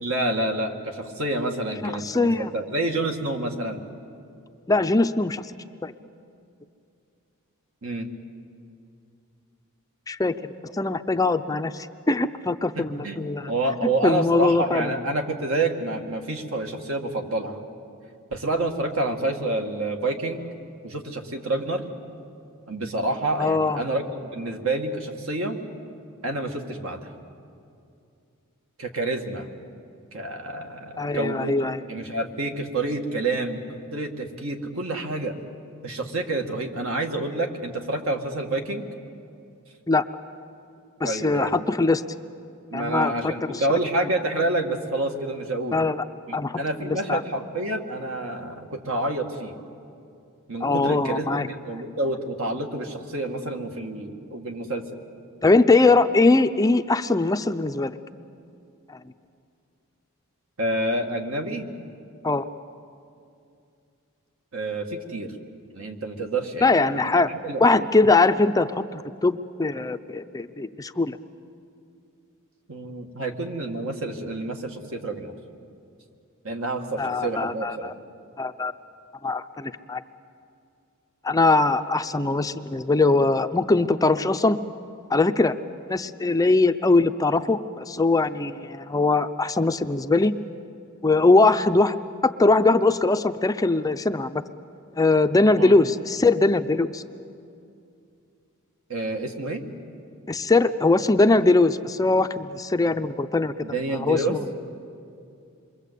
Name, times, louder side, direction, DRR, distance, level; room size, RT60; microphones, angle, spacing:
voice 1, 0.0-3.8 7.8-8.1 12.7-17.6 18.3-20.4 20.8-21.9 22.7-24.0 24.3-25.6 26.2-27.1 28.8-29.5 30.1-31.6 31.9-35.4 35.8-38.8 41.0-41.7 42.7-45.8 46.3-49.5 50.5-54.8 55.8-55.9 60.6-61.7 64.5-65.3 65.7-67.9 72.7-75.3 76.4-77.9 95.6-95.8 98.9-99.6 103.6-104.4, right 2 dB, 65° right, 3 dB, 2.2 m, -28 dB
voice 2, 1.8-2.5 4.7-5.5 5.8-5.9 10.1-13.5 14.0-14.9 23.4-23.8 31.0-31.8 39.9-40.0 41.0-42.0 42.7-43.6 45.7-46.0 46.3-47.2 50.6-51.5 55.4-57.9 62.2-62.5 66.6-67.3 67.6-71.2 77.0-77.9 78.4-78.7 79.2-80.0 81.2-84.6 85.1-85.5 85.9-90.3 91.0-92.0 92.2-94.4 95.0-97.0 100.3-103.5 103.9-104.4, left 3 dB, 15° left, 8 dB, 0.5 m, -21 dB
27.5 x 22.5 x 8.3 m, 2.5 s
head